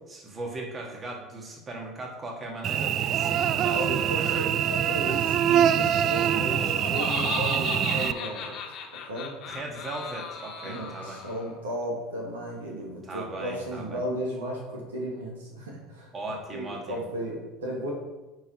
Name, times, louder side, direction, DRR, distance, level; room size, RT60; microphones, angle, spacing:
voice 1, 0.1-3.9 4.1-4.5 6.1-6.5 9.5-11.2 13.0-14.0 16.1-17.0, right 2 dB, 30° right, 0 dB, 2.0 m, -38 dB
Cricket / Buzz, 2.6-8.1, right 10 dB, 45° right, 0.3 m, -24 dB
voice 2, 3.7-8.6 9.0-9.3 10.6-16.1 16.5-17.9, equal, 80° right, -2 dB, 1.8 m, -34 dB
Laughter, 6.3-11.5, left 5 dB, 50° left, 1.4 m, -36 dB
9.5 x 4.8 x 4.4 m, 1.1 s
hypercardioid pair, 70°, 0 cm